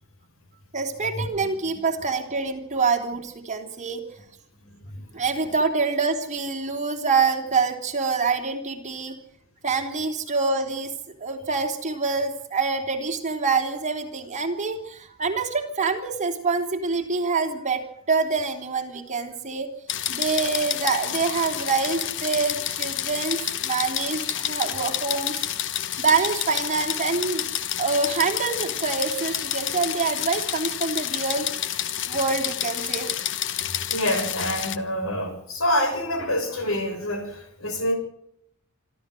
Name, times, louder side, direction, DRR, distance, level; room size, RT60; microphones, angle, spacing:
voice 1, 0.7-4.0 5.1-9.2 9.6-10.9 11.2-17.8 18.1-19.7 20.1-25.4 26.0-27.4 27.8-31.5 32.1-33.1, right 4 dB, 35° right, 4 dB, 3.4 m, -26 dB
teletype medium speed, 19.9-34.8, left 11 dB, 60° left, 1.2 m, -29 dB
voice 2, 33.9-38.0, left 1 dB, 75° left, 7 dB, 6.7 m, -26 dB
26.5 x 13.5 x 7.8 m, 0.74 s
head